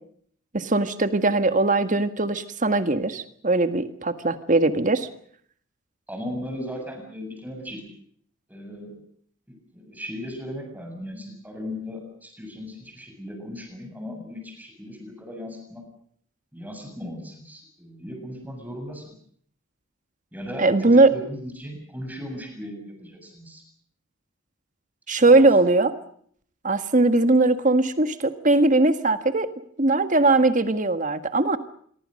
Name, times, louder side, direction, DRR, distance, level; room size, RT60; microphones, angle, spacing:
voice 1, 0.5-5.1 20.6-21.1 25.1-25.9 26.6-29.5 29.8-31.6, right 2 dB, 40° right, 9 dB, 1.7 m, -20 dB
voice 2, 6.1-7.8 8.5-8.9 9.5-15.8 16.5-19.1 20.3-23.6, left 1 dB, 10° right, 3 dB, 7.5 m, -37 dB
26.5 x 23.0 x 6.6 m, 0.63 s
head